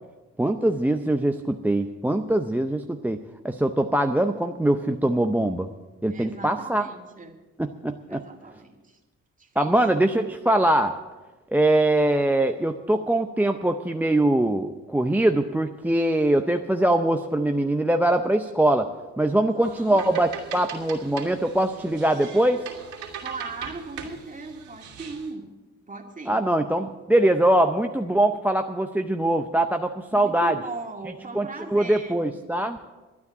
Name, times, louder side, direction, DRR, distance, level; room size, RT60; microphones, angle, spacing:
voice 1, 0.4-3.2 3.4-5.7 6.0-6.9 7.6-8.2 9.6-10.9 11.5-18.9 19.2-22.6 26.3-30.6 31.3-31.5 31.7-32.8, right 1 dB, 5° right, 8 dB, 0.6 m, -22 dB
voice 2, 6.1-7.4 8.1-9.0 9.4-9.8 19.5-20.0 23.2-25.5 25.9-26.5 30.1-32.3, right 3 dB, 25° right, 2 dB, 2.2 m, -38 dB
sound 1, 19.6-25.3, right 7 dB, 70° right, 2.8 m, -40 dB
12.0 x 9.5 x 8.1 m, 1.2 s
cardioid pair, 90°, 30 cm